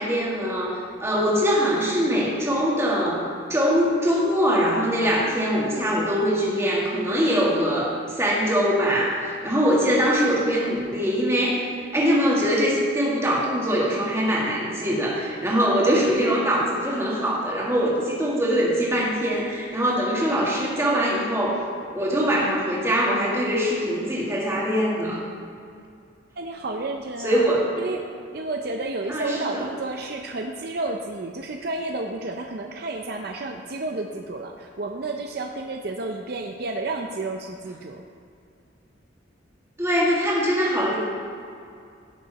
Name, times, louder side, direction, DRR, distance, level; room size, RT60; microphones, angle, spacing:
voice 1, 0.0-3.2 3.5-21.6 21.9-25.2 27.2-27.7 29.1-29.6 39.8-41.0, equal, 15° right, -5 dB, 2.0 m, -22 dB
voice 2, 26.4-27.5 27.8-28.1 28.3-38.0, right 2 dB, 55° right, 3 dB, 0.6 m, -31 dB
16.5 x 6.5 x 4.1 m, 2.4 s
head